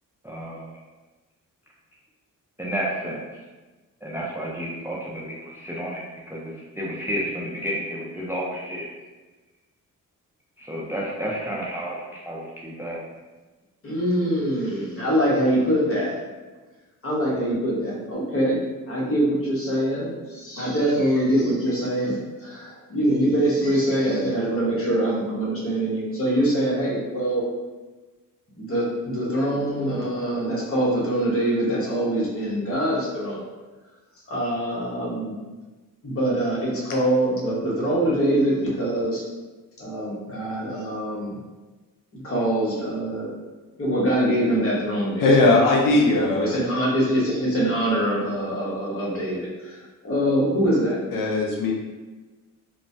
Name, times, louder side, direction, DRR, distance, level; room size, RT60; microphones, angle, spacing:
voice 1, 0.2-0.8 2.6-3.2 4.0-8.9 10.6-13.0, equal, 10° right, -4 dB, 0.3 m, -31 dB
voice 2, 13.8-16.1 17.0-27.4 28.6-33.4 34.3-35.4 36.0-39.2 39.8-41.4 42.1-43.3 43.8-45.3 46.2-49.8 50.0-51.0, right 1 dB, 40° left, -5 dB, 1.0 m, -24 dB
voice 3, 45.2-46.6 51.1-51.7, left 2 dB, 75° left, -1 dB, 0.5 m, -19 dB
3.0 x 2.1 x 2.6 m, 1.2 s
cardioid pair, 105°, 34 cm